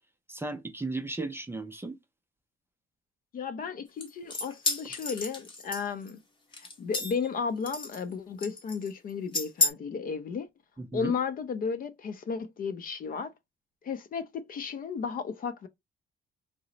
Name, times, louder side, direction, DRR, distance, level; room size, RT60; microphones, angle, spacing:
voice 1, 0.3-2.0 10.8-11.1, right 2 dB, 10° right, 0.4 m, -35 dB
voice 2, 3.3-6.2 6.6-10.5 10.9-13.3 13.8-15.7, left 5 dB, 45° left, 0.5 m, -34 dB
sound 1, 4.0-6.1 6.5-7.3 7.7-8.1 8.4-8.9 9.3-9.7, left 3 dB, 25° left, 0.8 m, -31 dB
2.9 x 2.0 x 3.8 m
cardioid pair, 140°, 20 cm